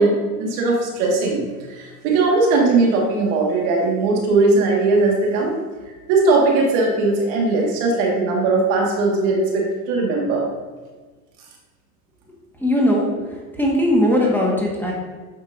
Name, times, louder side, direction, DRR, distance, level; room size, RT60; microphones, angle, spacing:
voice 1, 0.0-5.6 6.1-10.4, right 3 dB, 65° right, -1 dB, 2.0 m, -19 dB
voice 2, 12.6-14.9, left 1 dB, 5° left, -4 dB, 1.6 m, -19 dB
8.3 x 5.7 x 2.7 m, 1.3 s
hypercardioid pair, 100°, 46 cm